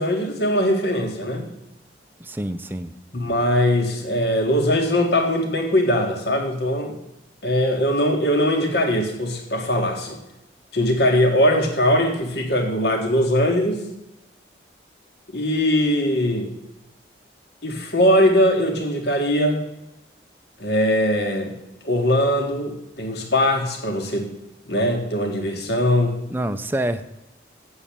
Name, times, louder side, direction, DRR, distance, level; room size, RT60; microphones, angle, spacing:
voice 1, 0.0-1.5 3.1-6.9 7.4-10.2 10.7-13.8 15.3-16.5 17.6-19.6 20.6-21.5 21.8-24.3 24.7-26.2, equal, 65° left, 3 dB, 1.8 m, -21 dB
voice 2, 2.2-2.9 26.3-27.0, right 1 dB, 10° right, 8 dB, 0.4 m, -26 dB
8.0 x 7.2 x 8.6 m, 0.92 s
head